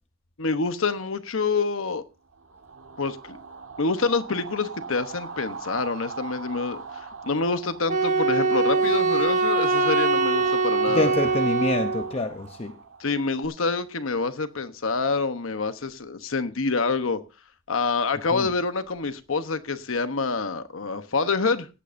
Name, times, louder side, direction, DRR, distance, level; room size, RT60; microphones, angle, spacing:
voice 1, 0.4-2.0 3.0-3.4 3.8-11.1 13.0-17.2 17.7-21.7, left 4 dB, 75° left, 1.0 m, -27 dB
sound 1, 2.3-13.5, right 5 dB, 80° right, 1.4 m, -40 dB
Wind instrument woodwind instrument, 7.9-12.1, right 4 dB, 40° right, 1.0 m, -23 dB
voice 2, 10.9-12.8 18.3-18.5, left 2 dB, 30° left, 0.7 m, -26 dB
17.0 x 13.5 x 2.6 m
head